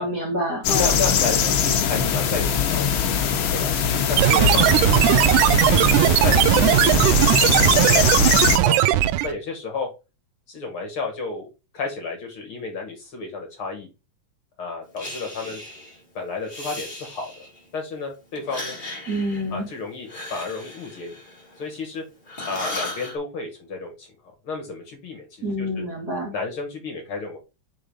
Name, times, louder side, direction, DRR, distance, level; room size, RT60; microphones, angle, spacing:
voice 1, 0.0-0.9 19.1-19.7 25.4-26.3, equal, 45° right, -2 dB, 1.5 m, -27 dB
sound 1, 0.6-8.6, left 7 dB, 75° left, 1.2 m, -22 dB
voice 2, 0.7-3.0 3.5-3.7 4.1-5.3 5.7-8.8 9.2-9.9 10.5-11.5 11.7-13.9 14.6-15.6 16.2-17.5 17.7-18.8 19.5-21.2 21.6-22.0 22.4-24.1 24.4-25.7 26.3-27.4, left 4 dB, 50° left, 3 dB, 1.9 m, -32 dB
sound 2, 4.2-9.3, right 14 dB, 85° right, 2.0 m, -18 dB
Breathing, 15.0-16.0 16.4-17.7 18.3-21.9 22.3-23.2, left 2 dB, 25° left, 1.2 m, -36 dB
5.4 x 3.9 x 5.0 m, 0.28 s
omnidirectional pair, 3.5 m